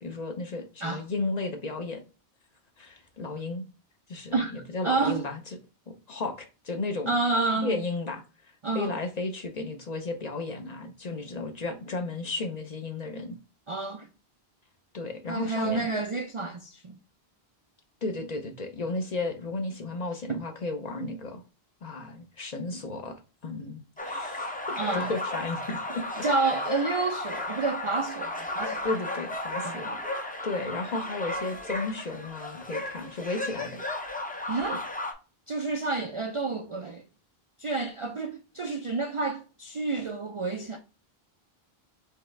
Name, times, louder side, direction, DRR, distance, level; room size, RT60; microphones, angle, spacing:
voice 1, 0.0-2.0 2.8-3.6 4.1-5.4 5.9-7.2 7.6-8.2 8.7-13.4 14.9-15.9 18.0-21.4 21.8-23.2 23.4-26.0 28.8-33.8, left 3 dB, 45° left, 0.7 m, -34 dB
voice 2, 4.8-5.2 7.1-7.8 8.6-8.9 13.7-14.1 15.3-17.0 20.3-20.4 24.8-25.1 26.2-28.9 29.6-29.9 34.5-34.8 35.5-37.0 37.6-40.8, right 3 dB, 50° right, 0.4 m, -29 dB
sound 1, 24.0-35.1, left 2 dB, 10° left, 0.5 m, -34 dB
4.8 x 3.3 x 3.2 m
omnidirectional pair, 1.1 m